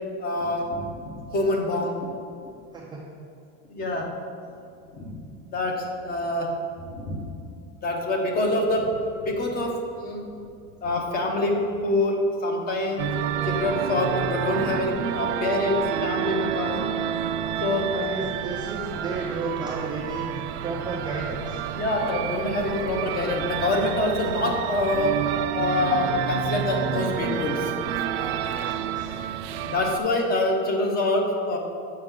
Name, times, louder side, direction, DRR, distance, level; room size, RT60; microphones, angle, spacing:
voice 1, 0.2-2.1 3.7-4.0 4.9-5.3 5.5-6.5 6.9-7.4 7.8-9.7 10.0-10.2 10.8-11.6 11.8-13.0 13.4-16.7 17.6-17.9 21.7-25.1 25.5-27.7 29.6-31.6, left 2 dB, 30° left, 1 dB, 0.9 m, -25 dB
voice 2, 2.7-3.1 17.9-21.7 28.1-29.2, right 3 dB, 15° right, -3 dB, 0.3 m, -33 dB
sound 1, 13.0-30.0, right 10 dB, 75° right, 0.5 m, -29 dB
7.5 x 5.5 x 3.7 m, 2.6 s
cardioid pair, 165°, 32 cm